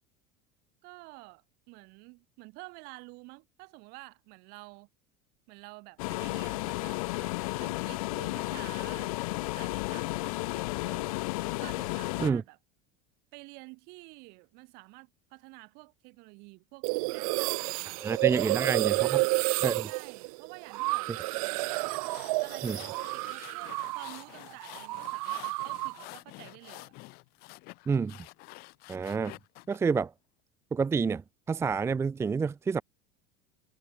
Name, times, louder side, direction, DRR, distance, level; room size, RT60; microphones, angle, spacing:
voice 1, 0.8-4.9 5.5-9.1 9.4-11.2 11.5-12.6 13.3-18.7 19.0-19.4 19.9-21.8 22.4-26.9, right 28 dB, 60° right, 4.2 m, -50 dB
sound 1, 6.0-12.3, left 23 dB, 80° left, 1.6 m, -33 dB
sound 2, 16.8-24.2 24.5-26.0, right 23 dB, 75° right, 1.0 m, -30 dB
voice 2, 18.0-18.9 19.6-19.9 22.6-22.8 27.9-28.2 28.9-29.3 29.7-30.1 30.7-31.2 31.5-32.8, right 5 dB, 15° right, 0.5 m, -28 dB
sound 3, 21.9-29.8, left 25 dB, 60° left, 5.1 m, -49 dB
supercardioid pair, 125°, 18 cm